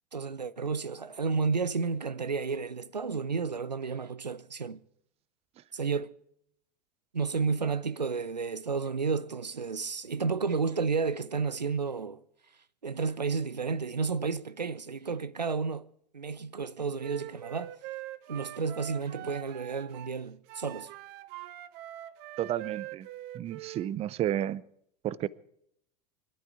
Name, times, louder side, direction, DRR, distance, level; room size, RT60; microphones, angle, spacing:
voice 1, 0.1-4.8 5.7-6.2 7.1-12.2 12.8-15.9 16.1-17.7 18.3-20.9, right 5 dB, 90° right, 0.7 m, -31 dB
Wind instrument woodwind instrument, 17.0-20.2 20.5-23.9, right 15 dB, 45° right, 1.1 m, -43 dB
voice 2, 22.4-23.1 23.3-24.6 25.0-25.3, right 11 dB, 30° right, 0.7 m, -31 dB
23.0 x 12.5 x 4.8 m
figure-of-eight pair, 85°, 21 cm